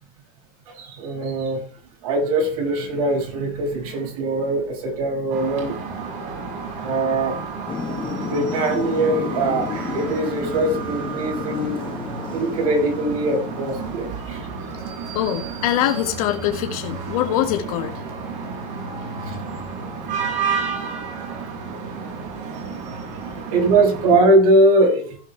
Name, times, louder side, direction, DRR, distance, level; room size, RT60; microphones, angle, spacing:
voice 1, 0.7-1.6 2.0-5.7 6.8-7.4 8.2-11.8 12.3-14.4 19.2-19.4 23.5-25.2, right 2 dB, 90° right, 0 dB, 6.2 m, -21 dB
sound 1, 5.3-24.1, right 5 dB, 70° right, 6.4 m, -31 dB
Thunder / Rain, 7.7-14.1, left 7 dB, 25° left, 1.5 m, -32 dB
voice 2, 15.1-18.0, left 12 dB, 85° left, 5 dB, 1.6 m, -23 dB
16.0 x 5.7 x 4.5 m, 0.41 s
supercardioid pair, 130°, 18 cm